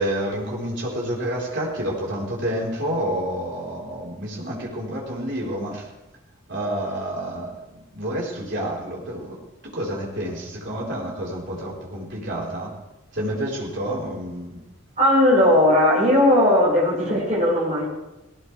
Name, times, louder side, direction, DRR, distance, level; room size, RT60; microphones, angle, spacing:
voice 1, 0.0-5.9 6.5-12.7 13.1-14.6, right 1 dB, 55° right, -4 dB, 4.8 m, -29 dB
voice 2, 15.0-17.9, left 1 dB, 35° right, -6 dB, 6.2 m, -17 dB
19.5 x 18.0 x 3.5 m, 1.0 s
head